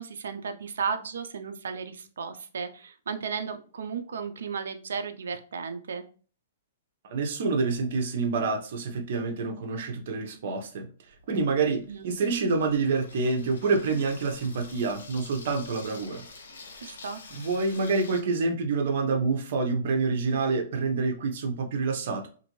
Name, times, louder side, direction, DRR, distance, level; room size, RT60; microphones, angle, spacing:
voice 1, 0.0-6.0 11.8-12.1 16.8-17.2, right 6 dB, 85° right, 7 dB, 0.4 m, -34 dB
voice 2, 7.1-10.9 11.3-16.2 17.3-22.3, right 4 dB, 60° right, 3 dB, 0.7 m, -27 dB
Water tap faucet / Sink (filling or washing), 11.1-18.2, left 3 dB, 85° left, 0.8 m, -48 dB
2.5 x 2.5 x 3.0 m, 0.39 s
hypercardioid pair, 150°, 0 cm